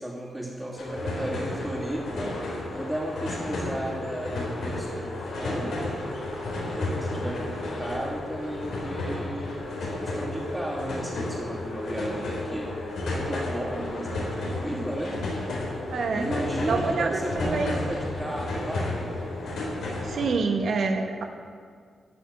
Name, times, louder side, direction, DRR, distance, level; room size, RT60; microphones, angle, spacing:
voice 1, 0.0-5.8 6.6-12.7 13.1-15.2 16.1-18.9, right 1 dB, 10° right, -9 dB, 2.8 m, -34 dB
sound 1, 0.8-20.3, left 2 dB, 85° left, 3.9 m, -32 dB
voice 2, 15.9-16.3 16.7-17.2 17.4-17.8 19.8-21.2, right 4 dB, 70° right, 4 dB, 1.2 m, -27 dB
13.5 x 7.1 x 9.7 m, 2.1 s
cardioid pair, 90°, 0 cm